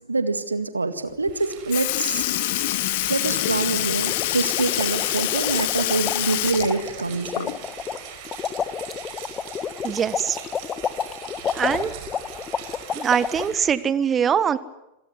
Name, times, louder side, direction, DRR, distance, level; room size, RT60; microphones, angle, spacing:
voice 1, 0.1-2.3 3.1-7.5, right 3 dB, 80° right, 11 dB, 1.9 m, -25 dB
Rain, 1.2-13.8, right 9 dB, 45° right, 5.2 m, -41 dB
Sink (filling or washing) / Liquid, 1.3-1.4 1.7-7.8 8.2-8.3 9.8-9.9 10.8-10.9 11.7-12.0 12.8-12.9, left 17 dB, 50° left, 1.1 m, -26 dB
sound 1, 4.0-13.5, left 7 dB, 25° left, 1.4 m, -30 dB
voice 2, 9.8-10.4 11.5-11.9 12.9-14.6, right 8 dB, 25° right, 16 dB, 1.3 m, -22 dB
27.5 x 18.0 x 9.7 m, 0.91 s
figure-of-eight pair, 90°, 0 cm